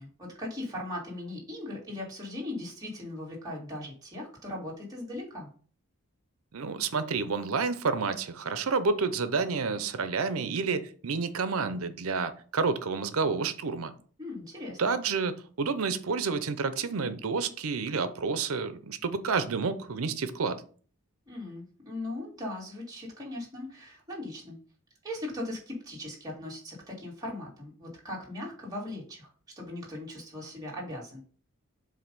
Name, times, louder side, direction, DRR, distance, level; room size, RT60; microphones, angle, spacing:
voice 1, 0.0-5.5 14.2-14.8 21.3-24.6 25.0-29.3 29.6-31.2, left 1 dB, 15° right, 2.0 m, -39 dB
voice 2, 6.5-13.9 14.8-20.6, right 4 dB, 70° right, 0.6 m, -29 dB
7.5 x 2.6 x 5.3 m
head